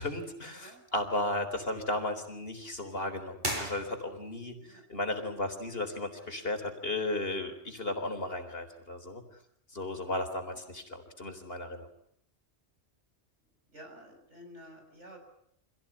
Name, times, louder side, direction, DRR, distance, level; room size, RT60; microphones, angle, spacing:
voice 1, 0.0-9.2 9.7-11.9, left 1 dB, 55° left, 6 dB, 4.2 m, -35 dB
sound 1, 3.4-4.4, right 1 dB, 40° right, 5.6 m, -36 dB
voice 2, 13.7-15.2, equal, 85° right, 3 dB, 7.0 m, -51 dB
26.5 x 17.0 x 9.9 m, 0.72 s
omnidirectional pair, 1.2 m